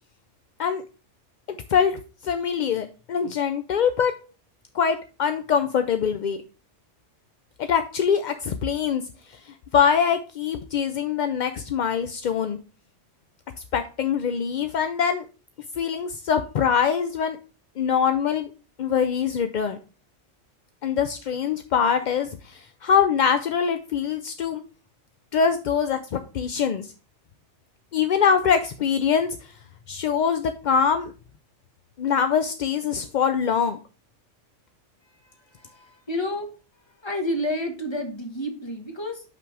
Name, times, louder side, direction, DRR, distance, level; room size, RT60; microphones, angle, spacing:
voice 1, 1.7-4.1 4.7-6.4 7.6-9.0 9.3-9.4 9.7-12.6 13.7-15.2 15.8-17.4 17.8-18.5 18.8-19.8 20.8-24.6 25.3-26.9 27.9-29.4 29.9-31.1 32.0-33.8, left 7 dB, 55° left, 8 dB, 0.5 m, -23 dB
voice 2, 35.1-36.5 37.0-39.2, left 1 dB, 20° left, 4 dB, 1.4 m, -30 dB
6.0 x 5.8 x 4.8 m, 0.35 s
omnidirectional pair, 1.2 m